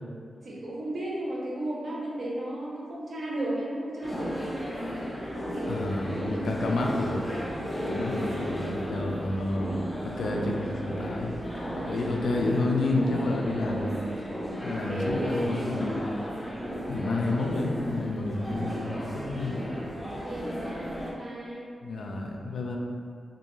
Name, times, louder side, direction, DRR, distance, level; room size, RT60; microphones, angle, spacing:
voice 1, 0.4-4.6 5.4-5.9 6.3-6.6 7.8-9.0 10.2-10.6 14.7-15.6 20.0-21.7, right 1 dB, 55° right, -5 dB, 0.5 m, -35 dB
sound 1, 4.0-21.1, equal, 10° left, 0.4 m, -34 dB
voice 2, 5.7-7.3 7.9-9.8 10.0-11.4 11.7-13.9 14.6-16.0 16.9-19.6 21.8-22.8, left 2 dB, 80° left, 0 dB, 0.3 m, -30 dB
2.5 x 2.2 x 3.0 m, 2.2 s
wide cardioid pair, 165°, 0 cm